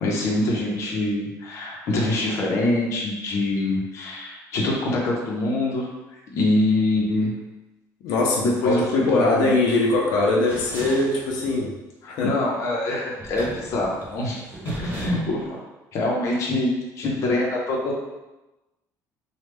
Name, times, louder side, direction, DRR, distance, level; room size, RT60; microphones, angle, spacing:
voice 1, 0.0-5.9 6.3-7.3 8.4-9.5 12.0-14.4 14.8-15.6 15.9-17.9, left 2 dB, 50° left, -3 dB, 0.7 m, -24 dB
voice 2, 8.0-11.7 12.1-12.3, left 2 dB, 90° left, -2 dB, 0.6 m, -22 dB
sound 1, 10.5-11.6 13.2-15.4, right 1 dB, 30° right, 0.7 m, -37 dB
3.2 x 2.3 x 3.3 m, 1.0 s
cardioid pair, 170°, 7 cm